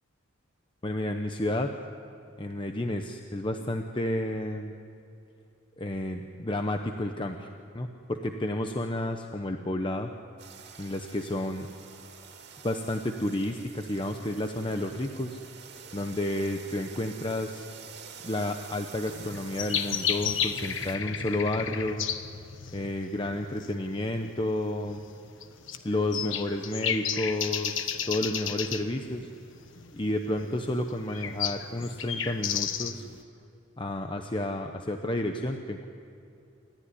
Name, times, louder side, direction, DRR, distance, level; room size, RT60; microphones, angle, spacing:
voice 1, 0.8-1.7 2.4-4.7 5.8-10.1 10.8-11.7 12.6-15.4 15.9-17.6 18.2-22.1 22.7-25.0 25.8-29.3 29.9-33.1 33.8-35.9, left 1 dB, 25° left, 5 dB, 0.9 m, -31 dB
sound 1, 10.4-21.0, right 7 dB, 55° right, 2.5 m, -48 dB
sound 2, 19.1-33.2, left 8 dB, 65° left, 1.3 m, -33 dB
28.5 x 14.0 x 10.0 m, 2.7 s
head